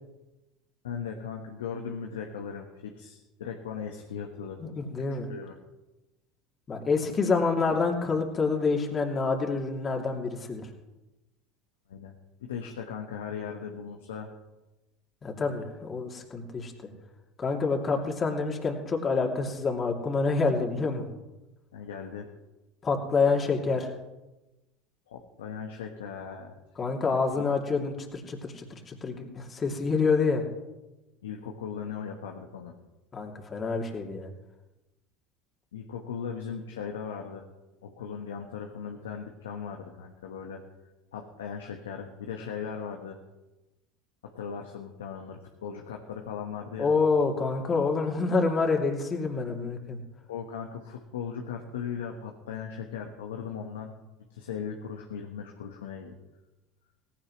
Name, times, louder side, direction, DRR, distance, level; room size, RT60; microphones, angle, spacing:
voice 1, 0.8-4.7 5.1-5.5 11.9-12.1 12.4-14.3 21.7-22.3 25.1-26.6 27.4-27.5 31.2-32.7 35.7-37.4 37.8-40.6 41.1-43.2 44.2-46.9 50.3-53.9 54.3-56.1, left 7 dB, 90° left, 2 dB, 1.3 m, -38 dB
voice 2, 4.8-5.3 6.7-10.7 15.2-16.7 17.4-21.1 22.8-23.9 26.8-30.4 33.1-34.3 46.8-50.0, left 4 dB, 30° left, 1 dB, 2.8 m, -27 dB
sound 1, 23.2-23.9, right 4 dB, 45° right, 3.3 m, -44 dB
17.5 x 16.5 x 3.2 m, 1.0 s
hypercardioid pair, 85°, 0 cm